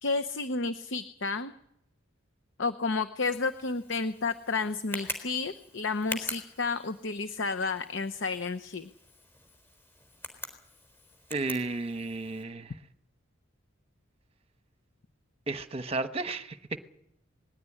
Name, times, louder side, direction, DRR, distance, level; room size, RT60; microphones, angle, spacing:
voice 1, 0.0-1.5 2.6-8.9, left 4 dB, 65° left, 0.8 m, -31 dB
Tick, 3.2-12.4, left 1 dB, 10° left, 4.1 m, -44 dB
voice 2, 11.3-12.7 15.5-16.8, right 3 dB, 30° right, 1.1 m, -33 dB
20.0 x 16.0 x 9.9 m
head